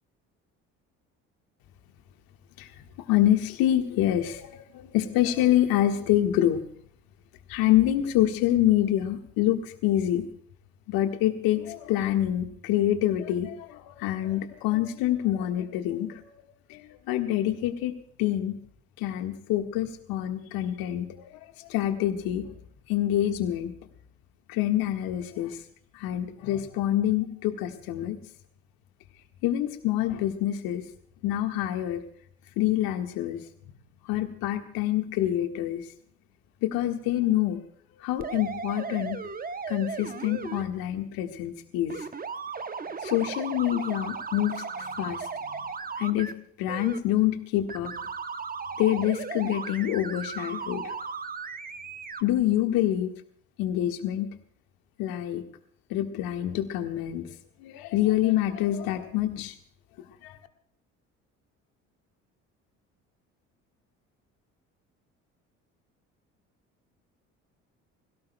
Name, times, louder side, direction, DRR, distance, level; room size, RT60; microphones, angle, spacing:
voice 1, 3.1-6.6 7.5-10.3 10.9-16.3 16.7-16.8 17.1-17.9 18.2-18.6 19.0-21.3 21.7-22.5 22.9-23.7 24.5-25.6 25.9-28.2 29.4-30.8 31.2-32.0 32.6-33.4 34.1-35.8 36.6-37.6 38.0-39.2 39.7-42.1 43.0-45.7 46.0-46.3 46.6-47.9 48.8-50.9 52.2-53.1 53.6-54.3 55.0-55.4 55.9-57.3 57.6-59.5 60.2-60.4, left 12 dB, 65° left, 6 dB, 1.7 m, -26 dB
sound 1, 38.2-40.6 41.9-46.3 46.7-47.0 47.7-52.2, right 5 dB, 25° right, 0.9 m, -36 dB
26.0 x 16.5 x 2.3 m, 0.64 s
hypercardioid pair, 55°, 38 cm